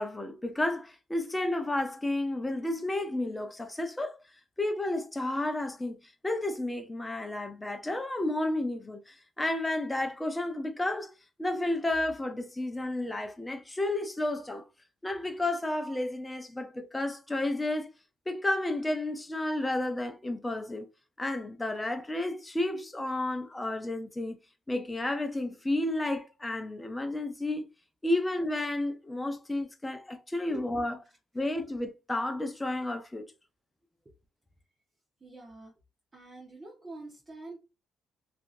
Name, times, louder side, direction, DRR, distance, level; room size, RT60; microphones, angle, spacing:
voice 1, 0.0-4.2 4.6-6.0 6.2-11.1 11.4-14.6 15.0-17.9 18.3-20.9 21.2-24.4 24.7-27.7 28.0-31.0 31.3-33.3, left 1 dB, 15° left, 0.6 m, -31 dB
voice 2, 35.2-35.7 36.1-37.6, right 2 dB, 25° right, 1.0 m, -45 dB
2.8 x 2.5 x 2.5 m
cardioid pair, 90°, 0 cm